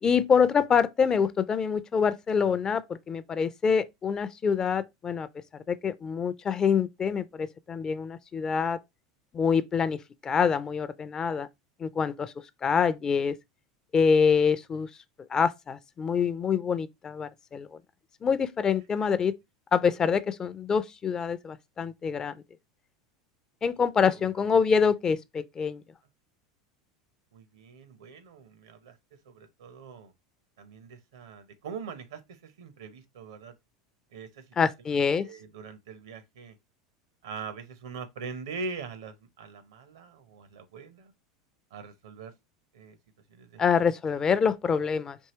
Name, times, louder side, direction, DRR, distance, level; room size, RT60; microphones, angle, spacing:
voice 1, 0.0-8.8 9.3-11.5 11.8-12.3 12.6-13.4 13.9-14.9 15.3-17.7 18.2-19.3 19.7-22.3 23.6-25.8 34.6-35.3 43.6-45.2, left 6 dB, 30° left, 0.4 m, -26 dB
voice 2, 27.3-28.9 29.3-30.1 30.6-33.5 34.1-34.5 34.9-36.6 37.2-41.1 41.7-42.3 42.7-43.0 43.3-43.6, right 4 dB, 75° right, 0.7 m, -42 dB
4.6 x 2.8 x 2.8 m
hypercardioid pair, 80°, 2 cm